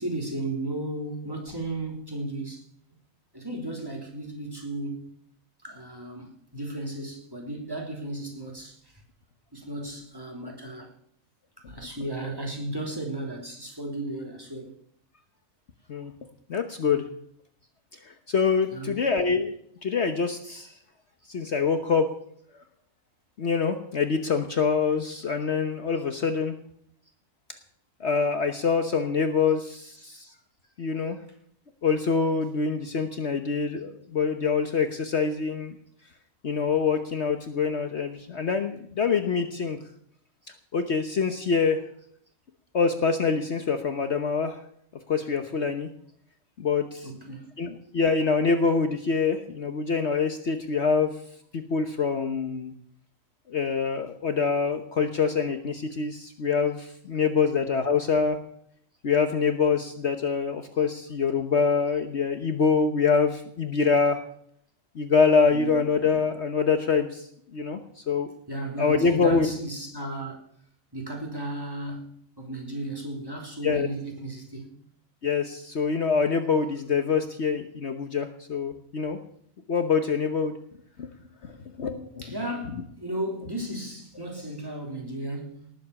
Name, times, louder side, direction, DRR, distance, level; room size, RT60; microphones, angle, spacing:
voice 1, 0.0-2.6 3.3-5.1 5.6-8.9 9.5-10.9 11.7-14.7 18.7-19.0 21.4-21.5 47.0-47.5 65.5-65.8 68.5-70.4 70.9-74.7 82.2-85.7, right 1 dB, 15° right, 3.4 m, -35 dB
voice 2, 16.5-17.0 18.1-20.7 21.3-22.1 23.4-26.6 28.0-30.3 30.8-31.2 31.8-35.7 36.4-39.8 40.7-41.8 42.7-44.6 45.1-45.9 46.6-47.1 47.6-51.2 51.5-52.7 53.5-58.4 59.0-64.2 64.9-67.8 68.1-68.3 68.8-69.5 73.6-73.9 75.2-79.2 79.7-80.6 81.0-81.1 81.4-82.1, left 5 dB, 55° left, 1.3 m, -25 dB
19.0 x 7.9 x 7.1 m
omnidirectional pair, 1.5 m